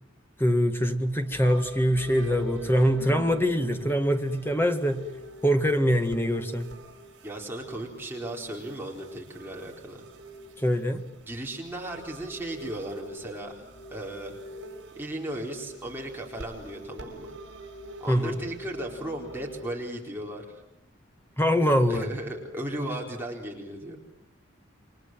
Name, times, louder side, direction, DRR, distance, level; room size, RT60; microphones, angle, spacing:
voice 1, 0.4-5.1 5.4-6.7 10.6-11.0 18.1-18.4 21.4-22.1, equal, 10° left, 6 dB, 1.9 m, -24 dB
sound 1, 1.1-19.6, right 1 dB, 60° right, 6.1 m, -44 dB
voice 2, 7.2-10.0 11.3-14.3 14.9-17.3 18.0-20.6 21.9-24.0, right 1 dB, 10° right, -1 dB, 4.3 m, -36 dB
29.0 x 24.0 x 7.7 m, 0.81 s
head